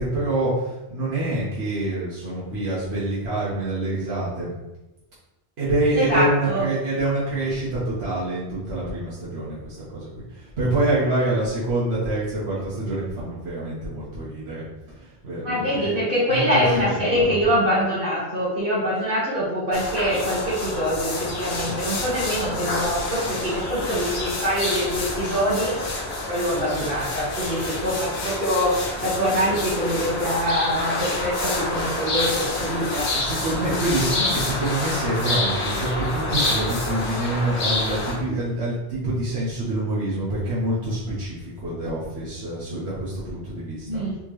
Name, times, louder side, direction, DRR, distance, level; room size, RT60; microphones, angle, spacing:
voice 1, 0.0-4.5 5.6-14.6 14.9-15.9 16.3-17.4 27.6-27.8 33.1-44.1, right 2 dB, 75° right, -9 dB, 1.3 m, -26 dB
voice 2, 6.0-6.7 15.4-25.7 26.3-33.1 43.9-44.2, equal, 55° right, -8 dB, 1.4 m, -24 dB
sound 1, 19.7-38.1, left 2 dB, 80° left, 1.1 m, -28 dB
4.3 x 2.9 x 3.1 m, 0.98 s
omnidirectional pair, 1.1 m